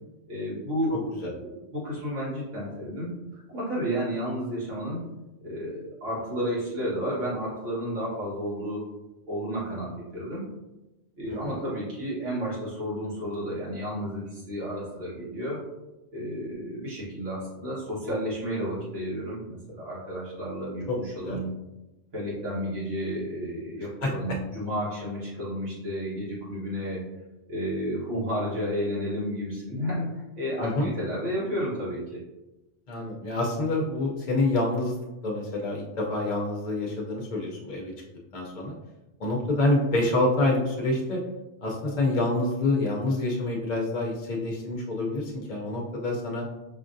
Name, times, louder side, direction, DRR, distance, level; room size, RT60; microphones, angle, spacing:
voice 1, 0.3-3.1 3.5-5.0 5.4-8.9 9.3-10.4 11.2-15.6 16.1-21.5 22.1-27.0 27.5-32.2, equal, 85° right, -8 dB, 1.7 m, -32 dB
voice 2, 0.9-1.3 11.3-11.6 20.9-21.4 24.0-24.4 30.6-30.9 32.9-35.0 35.2-37.9 38.3-38.7 39.2-41.2 41.6-46.4, left 2 dB, 50° left, -1 dB, 0.6 m, -27 dB
5.1 x 2.4 x 2.5 m, 1.0 s
omnidirectional pair, 1.2 m